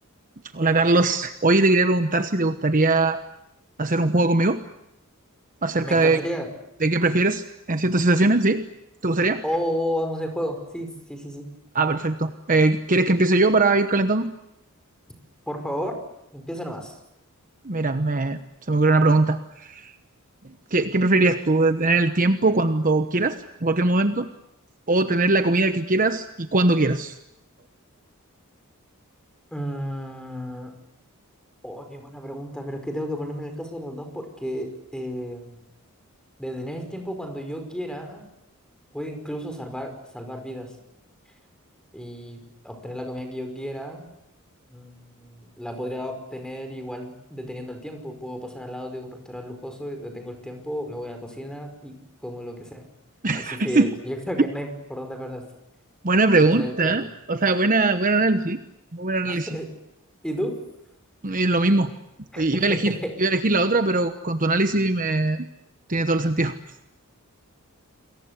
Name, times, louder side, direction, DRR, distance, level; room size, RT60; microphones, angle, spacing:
voice 1, 0.5-3.2 3.8-4.6 5.6-6.2 6.8-8.6 9.0-9.4 11.7-14.3 17.6-18.4 18.7-19.9 20.4-24.3 24.9-27.1 53.2-53.9 56.0-58.6 58.9-59.6 61.2-61.9 62.4-65.5 65.9-66.5, right 2 dB, 40° right, 9 dB, 1.1 m, -21 dB
voice 2, 5.8-6.5 9.4-11.5 15.5-16.0 16.3-16.9 29.5-30.7 31.6-35.5 36.4-38.2 38.9-40.8 41.9-44.1 44.7-52.9 53.3-55.5 56.4-56.9 59.3-59.7 60.2-60.7 62.3-63.2, equal, 5° left, 5 dB, 5.2 m, -33 dB
28.5 x 22.5 x 8.2 m, 0.83 s
head